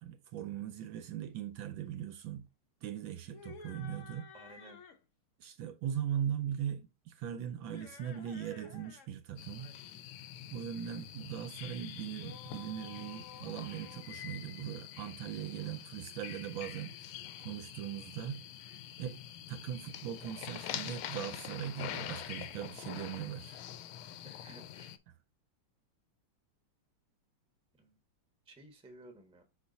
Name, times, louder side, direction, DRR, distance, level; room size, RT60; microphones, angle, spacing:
voice 1, 0.0-2.5 2.8-4.3 5.4-9.8 10.5-18.5 19.0-19.2 19.5-23.6, right 10 dB, 75° right, 1.2 m, -40 dB
sound 1, 3.2-5.0 7.6-9.1 9.4-9.8 11.9-14.8, left 6 dB, 60° left, 0.8 m, -53 dB
voice 2, 4.3-4.8 24.2-24.9 27.8-28.0 28.5-29.4, right 1 dB, 5° right, 0.8 m, -55 dB
sound 2, 9.4-25.0, left 11 dB, 80° left, 1.4 m, -45 dB
5.8 x 4.2 x 4.0 m
omnidirectional pair, 2.3 m